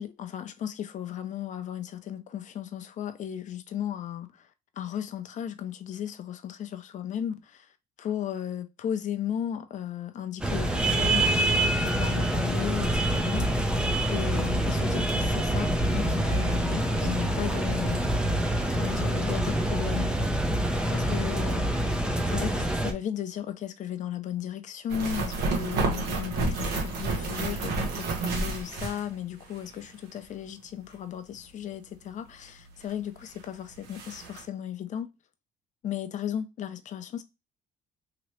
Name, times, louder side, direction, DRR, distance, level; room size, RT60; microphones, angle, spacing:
voice 1, 0.0-4.3 4.8-7.7 8.0-13.5 14.1-18.0 18.7-20.3 20.9-21.6 22.3-35.1 35.8-37.2, left 9 dB, 45° left, 0.5 m, -35 dB
sound 1, 10.4-22.9, right 1 dB, 5° right, 0.5 m, -26 dB
sound 2, 24.9-29.6 29.8-29.9 32.9-33.0 33.4-33.5 33.7-34.4, right 3 dB, 75° right, 1.1 m, -30 dB
3.0 x 2.9 x 3.0 m
cardioid pair, 110°, 17 cm